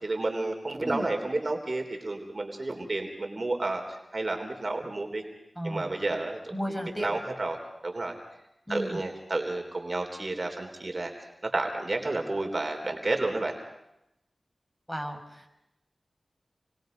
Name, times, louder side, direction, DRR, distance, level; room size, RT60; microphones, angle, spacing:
voice 1, 0.0-5.2 5.6-6.5 7.0-7.6 7.8-8.2 8.7-11.1 11.4-13.5, right 2 dB, 50° right, 3 dB, 3.6 m, -31 dB
voice 2, 5.6-5.9 6.5-7.1 8.7-9.0 14.9-15.5, equal, 5° left, 3 dB, 5.4 m, -34 dB
29.0 x 22.0 x 5.4 m, 0.84 s
cardioid pair, 50°, 0 cm